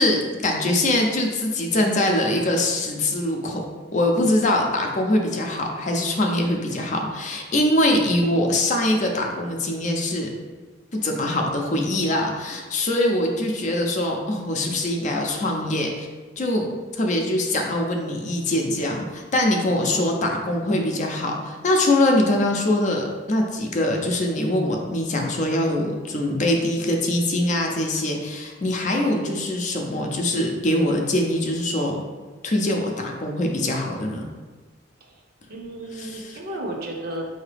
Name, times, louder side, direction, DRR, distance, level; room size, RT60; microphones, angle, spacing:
voice 1, 0.0-3.6 3.9-10.3 11.0-16.1 16.4-16.7 16.9-32.0 32.4-34.3 36.0-36.2, left 1 dB, 40° left, 1 dB, 0.5 m, -23 dB
voice 2, 19.8-20.3 35.0-35.2 35.5-37.3, right 1 dB, 55° right, 0 dB, 0.7 m, -34 dB
4.7 x 2.8 x 3.3 m, 1.4 s
head